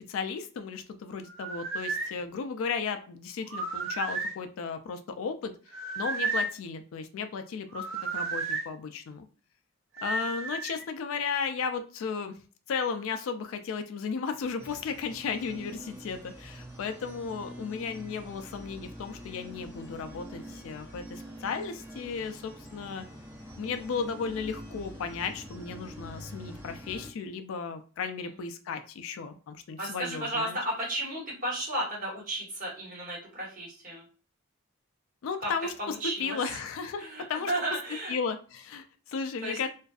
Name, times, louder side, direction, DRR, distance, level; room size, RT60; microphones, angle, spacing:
voice 1, 0.0-5.5 6.0-7.9 8.1-9.3 10.0-12.4 12.7-23.0 23.6-30.6 35.2-37.5 38.1-39.7, left 5 dB, 70° left, 8 dB, 0.3 m, -35 dB
sound 1, 1.3-2.1 3.5-4.4 5.7-6.6 7.7-8.7 10.0-10.8, right 3 dB, 60° right, 0.5 m, -33 dB
sound 2, 14.6-27.1, equal, 10° right, 0.8 m, -45 dB
voice 2, 29.8-34.0 35.4-35.5 35.8-36.4 37.0-38.1 39.4-39.6, right 1 dB, 40° right, -5 dB, 1.3 m, -33 dB
2.5 x 2.3 x 2.3 m, 0.37 s
head